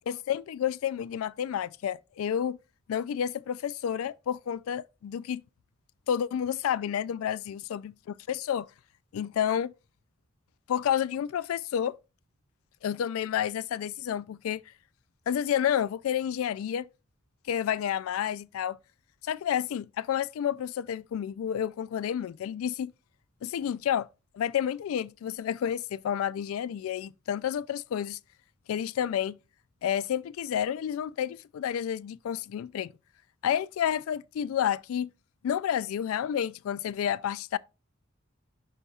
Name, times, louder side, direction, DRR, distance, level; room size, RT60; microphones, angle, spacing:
voice 1, 0.1-2.6 2.9-5.4 6.1-7.9 8.3-8.7 9.1-9.7 10.7-11.9 12.8-14.6 15.3-16.9 17.5-18.8 19.2-22.9 23.4-24.1 24.3-28.2 28.7-29.4 29.8-32.9 33.4-35.1 35.4-37.6, left 9 dB, 85° left, 0.3 m, -30 dB
11.0 x 4.2 x 2.4 m
head